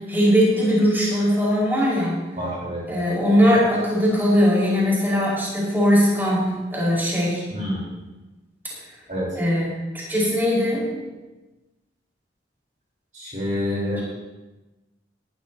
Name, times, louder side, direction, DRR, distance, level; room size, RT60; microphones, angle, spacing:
voice 1, 0.1-2.2 2.9-7.5 9.3-9.7 10.1-10.9 13.9-14.0, equal, 10° right, -7 dB, 5.4 m, -20 dB
voice 2, 2.4-2.8 7.5-7.9 9.1-9.3 13.1-14.0, left 1 dB, 45° right, -6 dB, 4.4 m, -27 dB
18.5 x 12.5 x 3.0 m, 1.1 s
head